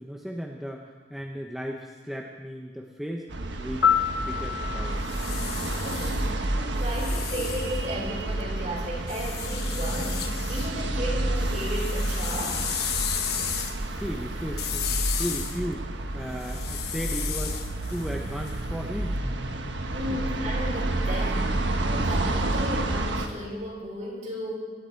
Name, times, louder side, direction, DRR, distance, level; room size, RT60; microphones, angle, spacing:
voice 1, 0.0-3.3 3.6-3.9 4.3-5.0 14.0-17.6 17.9-19.2 20.1-20.2, equal, ahead, 0 dB, 0.9 m, -35 dB
sound 1, 3.3-23.3, right 1 dB, 80° right, 1.3 m, -30 dB
Piano, 3.8-6.7 14.9-15.1, left 8 dB, 80° left, 0.9 m, -29 dB
sound 2, 4.9-8.4 9.1-10.7 11.1-19.0, left 8 dB, 60° left, 1.3 m, -34 dB
voice 2, 5.6-12.7 15.1-15.2 19.9-24.5, equal, 40° right, -3 dB, 5.7 m, -34 dB
24.5 x 11.0 x 4.6 m, 1.4 s
head